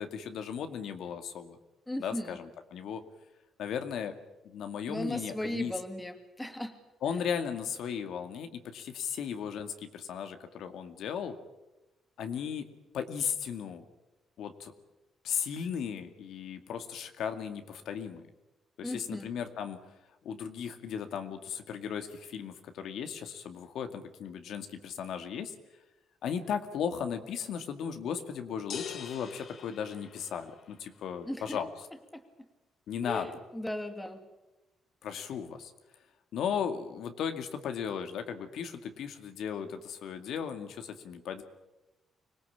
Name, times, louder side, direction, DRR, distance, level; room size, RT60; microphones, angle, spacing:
voice 1, 0.0-1.6 2.0-3.0 3.6-4.1 4.4-5.7 7.0-11.4 12.2-12.7 12.9-13.9 14.4-14.7 15.2-18.2 18.8-19.8 20.2-25.5 26.2-31.7 32.9-33.3 35.0-35.7 36.3-41.4, left 7 dB, 75° left, 7 dB, 2.2 m, -36 dB
voice 2, 1.9-2.4 4.9-6.7 18.8-19.3 31.3-31.6 32.1-32.2 33.0-34.2, left 1 dB, 10° left, 6 dB, 2.5 m, -37 dB
sound 1, 28.7-30.7, left 7 dB, 60° left, 1.8 m, -43 dB
25.0 x 18.5 x 8.7 m, 1.0 s
cardioid pair, 90°, 0 cm